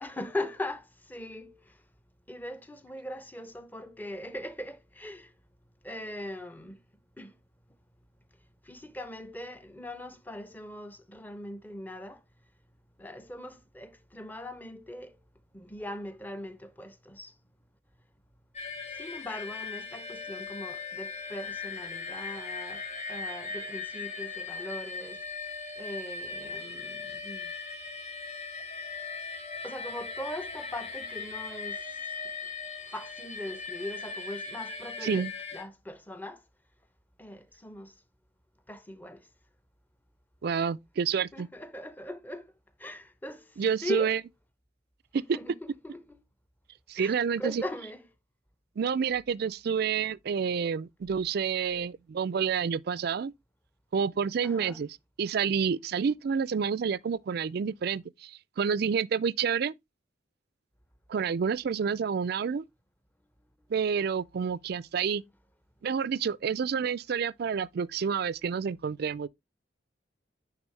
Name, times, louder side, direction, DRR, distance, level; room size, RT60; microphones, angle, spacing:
voice 1, 0.0-1.8 2.3-5.3 5.8-6.8 7.2-7.4 8.6-12.2 13.0-15.2 15.5-17.3 18.9-25.2 25.8-27.5 29.6-31.8 32.9-35.3 35.5-36.4 37.2-37.9 38.7-39.3 41.3-42.5 42.8-44.1 45.3-46.2 47.0-48.0 54.4-54.8, left 1 dB, 10° left, 0.7 m, -40 dB
sound 1, 18.5-35.6, left 4 dB, 35° left, 1.9 m, -39 dB
voice 2, 35.0-35.3 40.4-41.5 43.6-44.2 45.1-45.4 46.9-47.6 48.8-53.3 53.9-59.7 61.1-62.6 63.7-65.2 65.8-69.3, right 6 dB, 55° right, 0.3 m, -29 dB
9.6 x 3.5 x 3.2 m
head